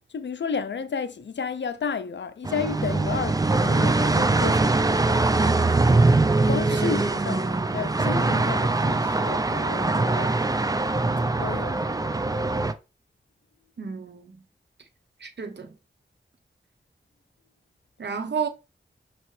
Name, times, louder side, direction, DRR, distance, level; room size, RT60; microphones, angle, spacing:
voice 1, 0.1-10.8 11.4-12.0, left 6 dB, 65° left, 0.5 m, -33 dB
sound 1, 2.4-12.7, right 3 dB, 20° right, 0.4 m, -22 dB
voice 2, 13.8-14.4 15.2-15.7 18.0-18.5, right 6 dB, 60° right, 0.7 m, -31 dB
5.5 x 2.9 x 3.1 m
wide cardioid pair, 60°, 20 cm